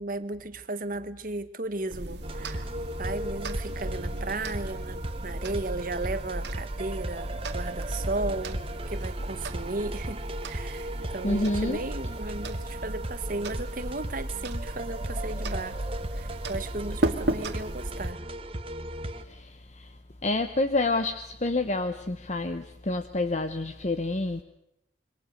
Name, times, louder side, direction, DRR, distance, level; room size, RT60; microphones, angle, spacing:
voice 1, 0.0-2.7 3.0-10.2 10.5-15.8 16.1-18.3, right 2 dB, 50° right, 11 dB, 1.4 m, -35 dB
sound 1, 1.9-18.1, right 1 dB, 70° right, 2.0 m, -35 dB
sound 2, 2.2-19.2, right 1 dB, 30° right, 1.3 m, -37 dB
voice 2, 11.2-11.8 19.2-19.9 20.2-24.4, left 2 dB, 40° left, 9 dB, 1.0 m, -28 dB
26.5 x 23.5 x 6.5 m, 0.81 s
head